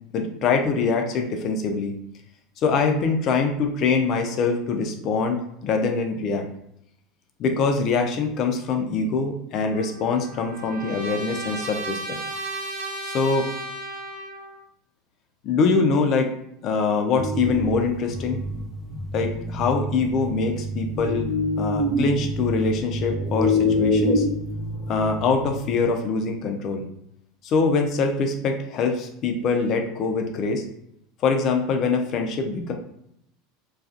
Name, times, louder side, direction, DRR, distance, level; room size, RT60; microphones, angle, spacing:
voice 1, 0.1-1.9 2.6-6.5 7.4-12.2 13.0-13.5 15.4-16.3 16.6-18.4 19.1-21.3 21.6-24.3 24.9-26.8 27.4-30.6 31.2-32.7, left 4 dB, 50° left, 4 dB, 0.5 m, -24 dB
Trumpet, 9.7-14.6, right 2 dB, 70° right, 0.4 m, -34 dB
sound 1, 17.1-25.8, left 1 dB, 15° left, 0.7 m, -26 dB
2.4 x 2.3 x 2.5 m, 0.74 s
hypercardioid pair, 85°, 0 cm